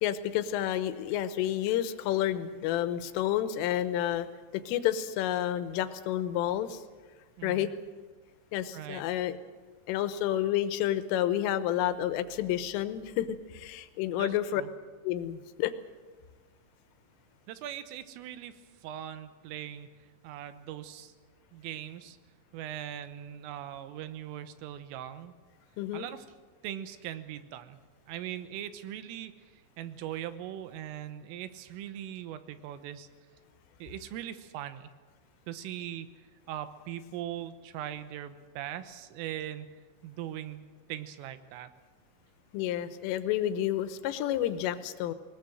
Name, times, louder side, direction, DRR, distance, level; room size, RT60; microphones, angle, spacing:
voice 1, 0.0-4.3 4.7-6.8 7.4-7.7 8.5-9.4 9.9-14.6 15.0-15.7 25.8-26.1 42.5-45.1, left 12 dB, 85° left, 12 dB, 3.5 m, -30 dB
voice 2, 7.4-7.7 8.7-9.0 14.2-14.7 17.5-18.5 18.8-19.9 20.2-21.1 21.5-22.2 22.5-25.3 25.9-26.3 26.6-27.8 28.1-29.3 29.8-33.1 33.8-34.9 35.5-36.1 36.5-39.7 40.0-41.7, right 11 dB, 85° right, 11 dB, 3.7 m, -40 dB
21.0 x 20.0 x 7.8 m, 1.4 s
omnidirectional pair, 5.7 m